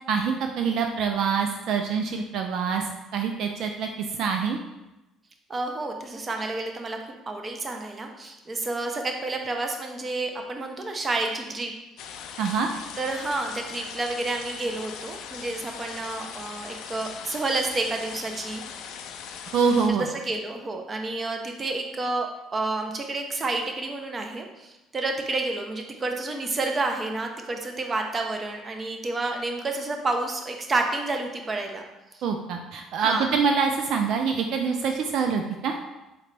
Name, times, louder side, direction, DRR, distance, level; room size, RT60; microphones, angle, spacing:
voice 1, 0.1-4.6 12.4-12.7 19.5-20.1 32.2-35.8, right 5 dB, 65° right, 4 dB, 0.4 m, -25 dB
voice 2, 5.5-11.7 13.0-18.6 19.9-22.3 22.5-31.8 32.1-32.2 33.0-33.3, right 2 dB, 30° right, 3 dB, 0.7 m, -30 dB
sound 1, 12.0-19.9, left 7 dB, 75° left, 0.4 m, -40 dB
4.2 x 3.9 x 3.2 m, 1.0 s
supercardioid pair, 95°, 0 cm